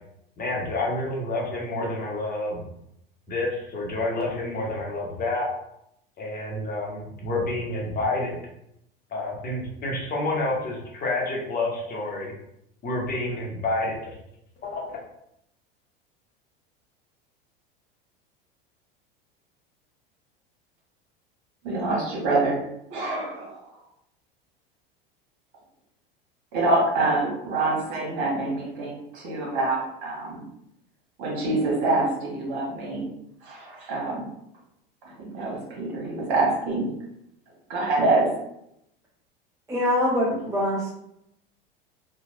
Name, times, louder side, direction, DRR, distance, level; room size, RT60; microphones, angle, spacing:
voice 1, 0.4-2.7 3.3-5.5 6.2-8.4 9.1-12.3 12.8-14.1 14.6-15.0, left 2 dB, 30° left, -2 dB, 1.0 m, -29 dB
voice 2, 21.6-22.6 22.9-23.6 26.5-30.4 31.2-33.1 33.4-34.3 35.2-36.9 37.7-38.3, right 2 dB, 60° right, -3 dB, 1.4 m, -25 dB
voice 3, 39.7-40.9, left 1 dB, 10° right, -5 dB, 0.5 m, -24 dB
2.9 x 2.4 x 2.6 m, 0.78 s
hypercardioid pair, 85°, 29 cm